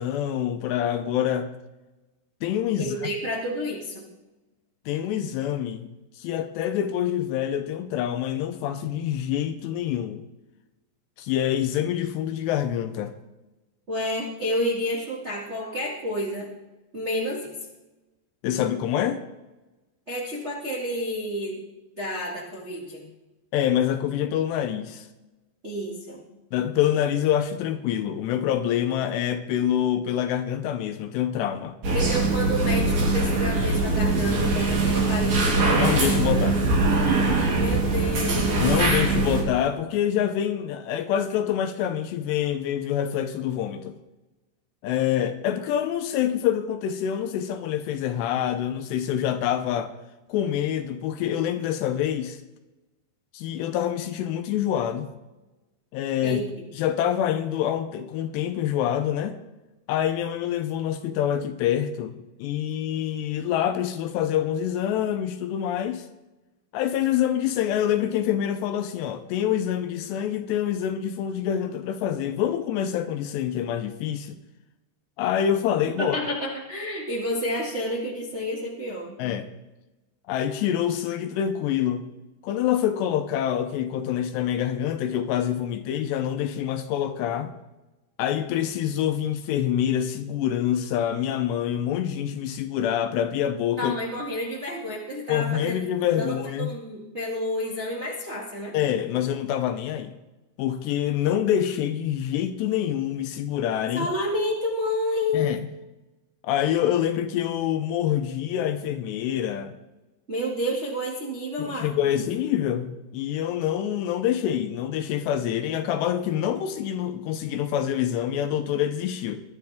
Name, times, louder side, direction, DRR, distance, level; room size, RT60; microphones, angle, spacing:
voice 1, 0.0-1.5 2.4-3.0 4.9-5.9 6.2-10.2 11.2-13.1 18.4-19.2 23.5-25.1 26.5-31.8 35.8-36.6 38.6-43.9 44.8-49.9 50.3-52.4 53.3-55.1 55.9-56.4 56.7-59.4 59.9-66.1 66.7-74.4 75.2-76.2 79.2-79.5 80.3-82.1 82.4-87.5 88.2-93.9 95.3-96.7 98.7-100.2 100.6-104.1 105.3-105.6 106.4-109.7 111.6-119.4, left 10 dB, 80° left, 2.6 m, -26 dB
voice 2, 2.8-4.1 13.9-16.5 16.9-17.5 20.1-21.6 22.0-23.0 25.6-26.2 31.9-35.9 37.6-38.6 56.2-56.6 76.0-79.2 93.8-95.8 96.1-98.7 103.9-105.5 110.3-111.9, left 1 dB, 70° right, 0.6 m, -30 dB
sound 1, 31.8-39.4, right 3 dB, 55° right, 5.0 m, -22 dB
21.5 x 10.5 x 3.5 m
omnidirectional pair, 5.4 m